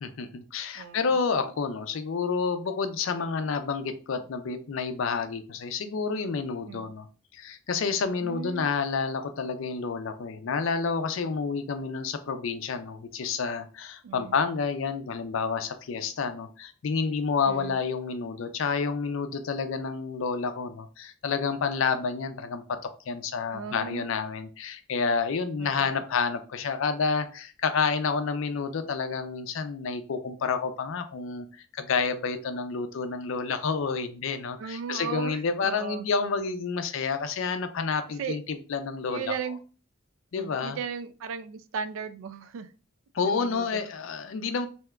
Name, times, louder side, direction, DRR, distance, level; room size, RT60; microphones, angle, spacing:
voice 1, 0.0-7.1 7.3-31.5 31.7-39.3 40.3-40.8 43.1-44.7, left 5 dB, 70° left, 9 dB, 0.4 m, -29 dB
voice 2, 0.8-1.2 6.7-6.9 8.2-8.7 14.0-14.3 17.5-17.8 23.5-24.1 25.6-26.0 34.6-36.1 38.2-38.4 39.1-39.6 40.4-42.7 43.2-43.8, right 6 dB, 70° right, 13 dB, 0.3 m, -36 dB
3.3 x 2.8 x 2.3 m, 0.37 s
head